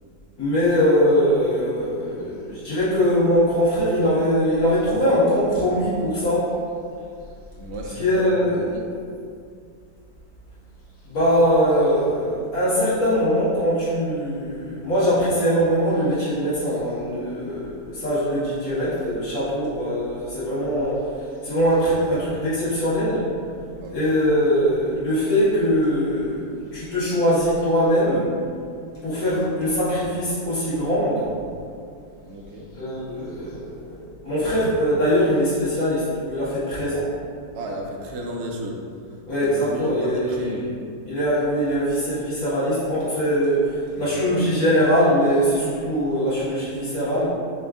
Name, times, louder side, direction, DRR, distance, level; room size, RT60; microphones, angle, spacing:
voice 1, 0.4-6.5 8.0-8.6 11.1-21.0 21.4-23.2 23.9-28.3 29.0-31.3 32.7-37.1 39.3-40.5 41.1-47.3, equal, 65° left, -12 dB, 2.1 m, -22 dB
voice 2, 7.6-8.3 8.6-8.8 23.8-24.1 32.2-32.7 37.5-38.8 39.3-40.7 43.9-44.3, equal, 65° right, 0 dB, 0.6 m, -33 dB
5.9 x 2.3 x 3.6 m, 2.3 s
omnidirectional pair, 1.7 m